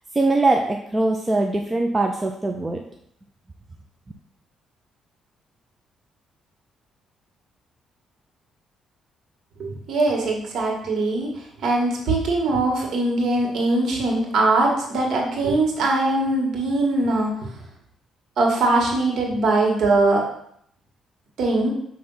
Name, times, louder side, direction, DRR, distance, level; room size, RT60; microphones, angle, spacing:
voice 1, 0.1-2.9, right 2 dB, 20° right, 2 dB, 0.6 m, -22 dB
voice 2, 9.6-17.6 18.4-20.3 21.4-21.7, right 2 dB, 65° right, -1 dB, 1.9 m, -21 dB
5.9 x 3.2 x 5.6 m, 0.70 s
cardioid pair, 90°, 0 cm